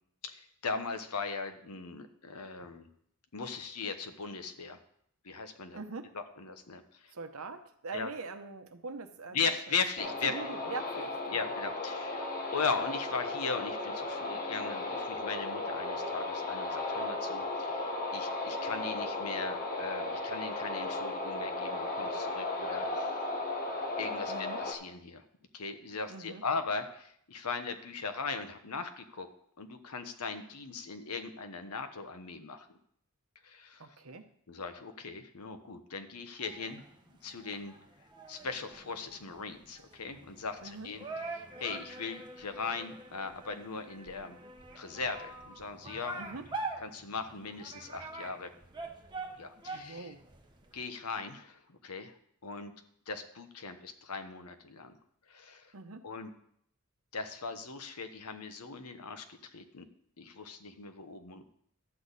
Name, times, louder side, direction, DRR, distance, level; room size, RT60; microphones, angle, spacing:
voice 1, 0.2-2.9 3.3-4.8 5.2-5.8 6.1-6.8 7.9-8.1 9.3-10.4 11.3-23.3 24.0-25.2 25.5-29.3 29.6-32.7 33.4-33.8 34.5-36.8 37.2-37.7 38.3-41.1 41.4-44.4 44.8-46.2 46.8-48.5 49.3-50.1 50.7-52.1 52.4-52.7 53.1-54.9 55.3-55.7 56.0-56.3 57.1-59.2 59.5-59.9 60.2-61.4, left 4 dB, 85° left, 8 dB, 1.0 m, -38 dB
voice 2, 5.7-6.2 7.1-9.8 10.0-11.5 24.3-24.6 26.1-26.4 33.8-34.3 40.6-40.9 46.2-46.5 49.7-50.2 55.7-56.1, right 4 dB, 70° right, 8 dB, 0.9 m, -43 dB
sound 1, 10.0-24.7, left 2 dB, 40° left, 1.3 m, -35 dB
sound 2, 36.4-50.8, right 3 dB, 20° right, 1.1 m, -44 dB
12.0 x 8.2 x 4.1 m, 0.69 s
head